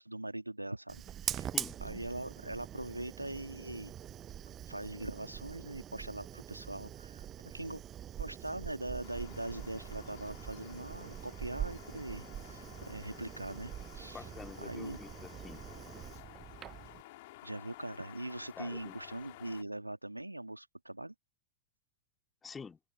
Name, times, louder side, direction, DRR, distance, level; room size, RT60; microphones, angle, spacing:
voice 1, 0.0-1.5 1.8-3.9 4.7-7.8 8.2-14.2 14.6-15.0 17.4-21.1, right 1 dB, 85° right, 1.9 m, -42 dB
Fire, 0.9-17.0, right 10 dB, 30° right, 0.9 m, -44 dB
sound 1, 9.0-19.6, left 19 dB, 50° left, 4.5 m, -53 dB
voice 2, 14.1-15.7 18.6-19.0 22.4-22.8, left 5 dB, 15° left, 4.3 m, -47 dB
open air
figure-of-eight pair, 90°, 0 cm